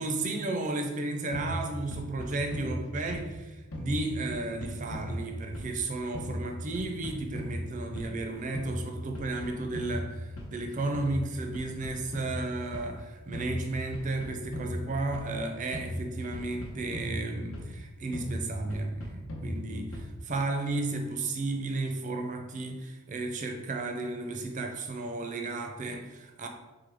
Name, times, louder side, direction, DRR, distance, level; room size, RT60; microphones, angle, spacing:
voice 1, 0.0-26.5, right 2 dB, 35° right, 0.5 m, -33 dB
sound 1, 1.3-3.4 3.7-5.9 6.1-8.3 8.5-10.6 10.9-12.9 13.3-15.4 15.7-17.8 18.1-20.3, equal, 80° left, 0.9 m, -38 dB
3.7 x 3.5 x 3.4 m
head